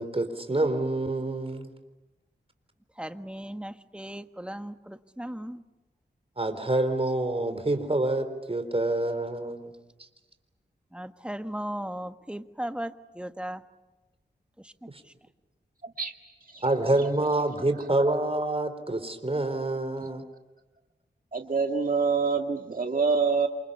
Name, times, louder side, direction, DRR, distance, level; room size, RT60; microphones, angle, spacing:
voice 1, 0.0-1.7 6.4-9.7 10.0-10.1 14.9-15.0 16.6-20.2, right 2 dB, 30° right, 8 dB, 4.0 m, -27 dB
voice 2, 3.0-5.6 10.9-13.6 14.6-14.7, right 1 dB, 5° right, 9 dB, 1.5 m, -37 dB
voice 3, 15.8-16.1 16.4-16.6 21.3-23.5, right 5 dB, 50° right, 4 dB, 1.9 m, -26 dB
28.0 x 27.5 x 7.0 m, 1.1 s
cardioid pair, 50°, 19 cm